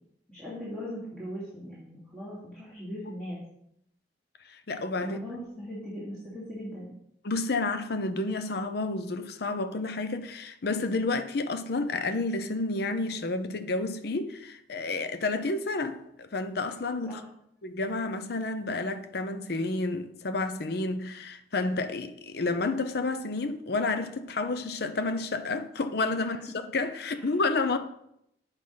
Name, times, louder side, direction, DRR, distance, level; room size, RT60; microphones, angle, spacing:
voice 1, 0.3-3.4 5.0-6.9 17.1-17.2 26.2-26.4 27.1-27.2, equal, 5° left, 2.8 m, -39 dB
voice 2, 4.4-5.2 7.2-17.2 17.6-27.8, left 3 dB, 65° left, 0.7 m, -30 dB
8.6 x 4.9 x 5.7 m
head